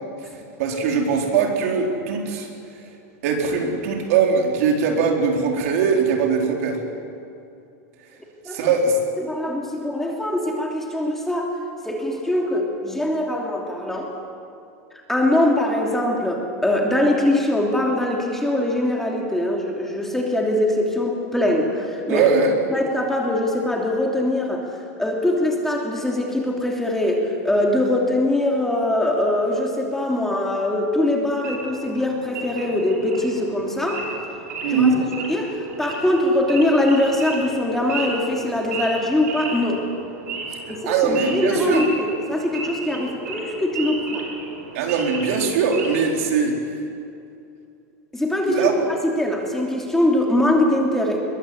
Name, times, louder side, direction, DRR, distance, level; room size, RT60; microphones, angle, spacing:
voice 1, 0.6-2.5 3.2-6.8 8.5-9.0 22.1-22.5 34.6-35.0 40.9-41.8 44.7-46.6 48.5-48.8, right 5 dB, 65° right, 1 dB, 4.4 m, -21 dB
voice 2, 8.4-8.8 9.2-11.5 11.8-14.1 15.1-22.2 22.7-24.7 25.0-34.0 34.7-34.9 35.2-39.8 40.7-44.3 48.1-48.7 49.0-51.2, left 1 dB, 5° left, 0 dB, 3.0 m, -22 dB
Wild animals / Idling, 31.4-46.1, right 3 dB, 85° right, 5.9 m, -34 dB
22.0 x 22.0 x 8.2 m, 2.6 s
supercardioid pair, 150°, 8 cm